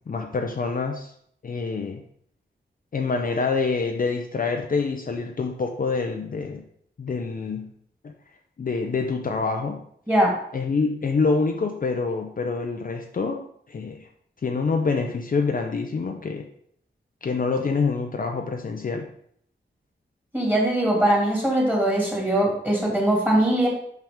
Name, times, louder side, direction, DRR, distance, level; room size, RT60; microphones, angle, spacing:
voice 1, 0.1-1.1 1.4-2.0 2.9-6.6 7.0-7.7 8.6-9.8 10.5-14.0 14.4-16.5 17.2-19.1, left 4 dB, 45° left, 3 dB, 0.6 m, -26 dB
voice 2, 20.3-23.7, right 1 dB, 10° right, -3 dB, 2.5 m, -21 dB
5.8 x 5.7 x 3.6 m, 0.66 s
wide cardioid pair, 125°, 20 cm